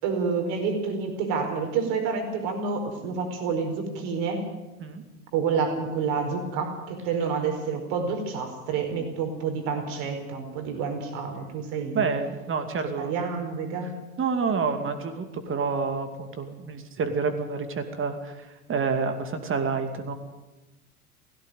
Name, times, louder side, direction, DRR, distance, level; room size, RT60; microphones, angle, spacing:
voice 1, 0.0-4.5 5.3-12.0 13.0-14.0, right 5 dB, 55° right, 5 dB, 4.9 m, -28 dB
voice 2, 11.9-13.1 14.2-20.1, right 5 dB, 25° right, 7 dB, 2.6 m, -28 dB
17.5 x 16.5 x 9.3 m, 1.1 s
figure-of-eight pair, 85°, 46 cm